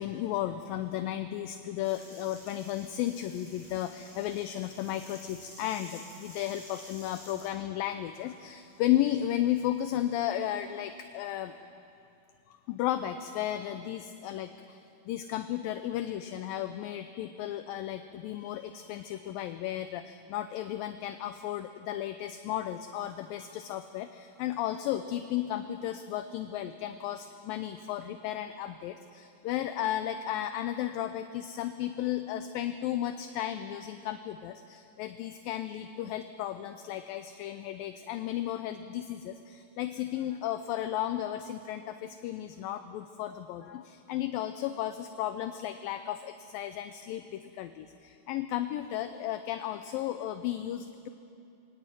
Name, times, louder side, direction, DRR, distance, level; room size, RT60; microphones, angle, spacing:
voice 1, 0.0-11.6 12.5-14.8 15.1-51.1, left 12 dB, 80° left, 9 dB, 2.2 m, -34 dB
sound 1, 1.8-7.5, equal, 5° left, 5.7 m, -51 dB
23.0 x 17.5 x 9.2 m, 2.6 s
omnidirectional pair, 4.6 m